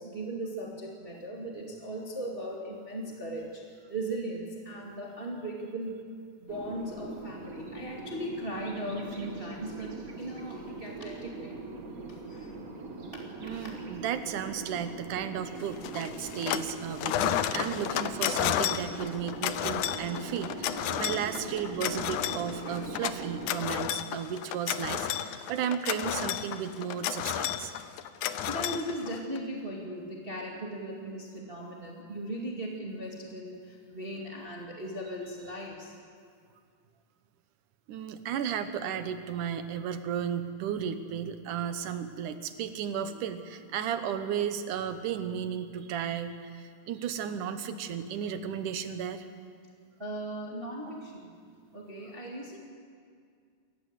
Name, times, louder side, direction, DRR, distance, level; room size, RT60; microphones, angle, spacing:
voice 1, 0.0-6.0 6.4-11.6 12.1-12.6 13.5-13.7 28.5-35.9 50.0-51.3 51.7-52.6, right 1 dB, 20° right, -2 dB, 2.1 m, -38 dB
sound 1, 6.5-23.6, right 3 dB, 35° right, 1.6 m, -41 dB
voice 2, 13.4-27.7 37.9-49.3, right 8 dB, 75° right, 9 dB, 2.6 m, -34 dB
sound 2, 15.8-16.7 17.0-29.4, left 11 dB, 75° left, 2.2 m, -32 dB
28.5 x 14.5 x 8.2 m, 2.2 s
omnidirectional pair, 3.7 m